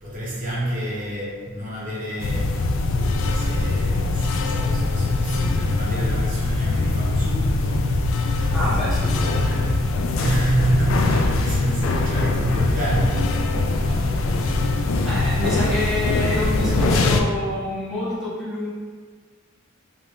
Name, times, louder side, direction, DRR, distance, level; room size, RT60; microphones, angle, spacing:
voice 1, 0.0-2.6 3.3-7.9 8.4-8.6 10.2-14.8, right 1 dB, 40° right, -6 dB, 1.0 m, -29 dB
sound 1, 2.2-17.2, left 2 dB, 70° left, 0.3 m, -22 dB
voice 2, 8.5-9.7 15.0-18.7, left 1 dB, ahead, -12 dB, 1.3 m, -27 dB
3.3 x 2.5 x 3.5 m, 1.5 s
head